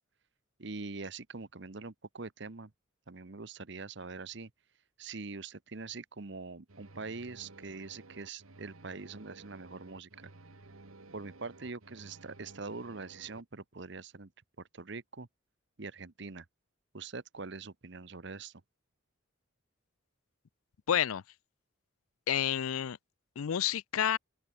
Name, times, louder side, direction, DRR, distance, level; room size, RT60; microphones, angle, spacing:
voice 1, 0.6-2.7 3.1-4.5 5.0-10.1 11.1-14.3 14.7-15.3 15.8-16.4 16.9-18.6, right 4 dB, 55° right, 1.0 m, -43 dB
sound 1, 6.7-13.4, right 2 dB, 85° right, 1.7 m, -54 dB
voice 2, 20.9-21.2 22.3-23.0 23.4-24.2, left 9 dB, 85° left, 0.5 m, -29 dB
open air
head